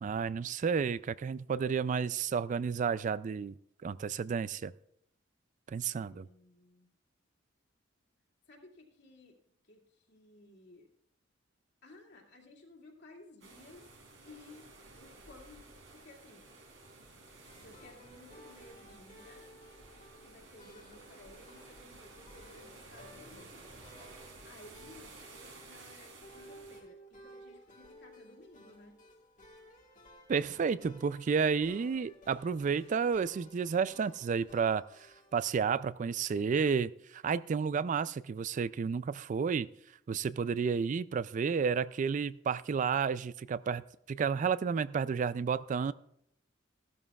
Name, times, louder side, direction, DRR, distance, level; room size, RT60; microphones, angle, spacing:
voice 1, 0.0-3.5 3.8-4.7 5.7-6.3 30.3-34.8 35.3-39.7 40.1-43.8 44.1-45.9, right 6 dB, 40° right, 0.3 m, -31 dB
voice 2, 5.9-6.9 8.5-9.4 9.6-9.8 10.1-10.9 11.8-13.9 14.2-14.7 15.0-15.6 15.9-16.5 17.3-19.5 20.2-23.7 24.4-29.0, left 2 dB, 60° left, 2.3 m, -56 dB
sound 1, 13.4-26.8, right 3 dB, 80° right, 3.4 m, -54 dB
sound 2, 17.5-35.4, equal, 45° left, 1.5 m, -57 dB
15.0 x 12.5 x 2.4 m
head